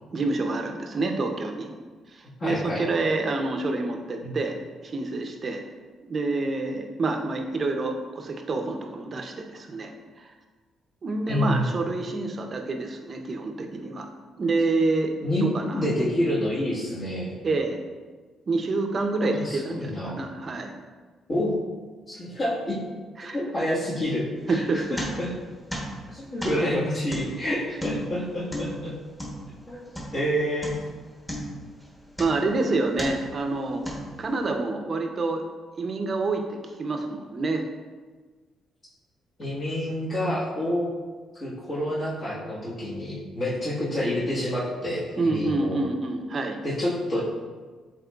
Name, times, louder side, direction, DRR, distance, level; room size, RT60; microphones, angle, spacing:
voice 1, 0.1-1.7 2.1-4.6 4.8-5.6 6.0-9.9 10.2-10.3 11.0-14.1 14.4-15.8 17.4-17.8 18.5-20.7 23.2-23.4 24.5-24.9 32.2-33.9 34.2-35.4 35.8-37.7 45.2-46.6, right 3 dB, 40° right, 4 dB, 0.6 m, -27 dB
voice 2, 2.4-2.9 4.2-4.3 11.3-11.7 15.2-17.3 19.3-20.2 21.3-21.5 22.1-22.8 23.2-25.3 26.1-28.9 29.7-29.8 30.1-30.7 39.4-40.9 41.3-45.8 46.6-47.2, left 1 dB, 45° left, -8 dB, 1.5 m, -28 dB
sound 1, 24.4-25.5 25.7-30.3 30.6-31.0 31.3-32.6 32.9-33.4 33.9-34.4, equal, 5° left, 1.0 m, -35 dB
7.4 x 3.0 x 2.4 m, 1.4 s
cardioid pair, 90°, 0 cm